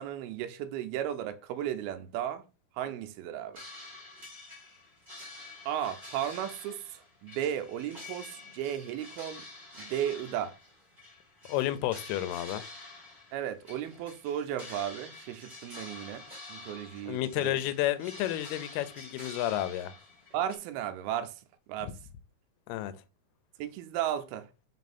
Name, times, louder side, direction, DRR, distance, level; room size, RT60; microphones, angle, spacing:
voice 1, 0.0-2.4 2.7-3.6 5.7-9.5 9.8-10.6 13.3-17.6 20.3-21.4 21.7-21.9 23.6-24.5, right 10 dB, 80° right, 2.4 m, -35 dB
sound 1, 3.5-20.5, left 2 dB, 20° right, 1.4 m, -48 dB
voice 2, 11.5-12.6 17.1-19.9 22.7-22.9, left 14 dB, 85° left, 2.5 m, -31 dB
4.9 x 4.6 x 4.2 m
omnidirectional pair, 4.5 m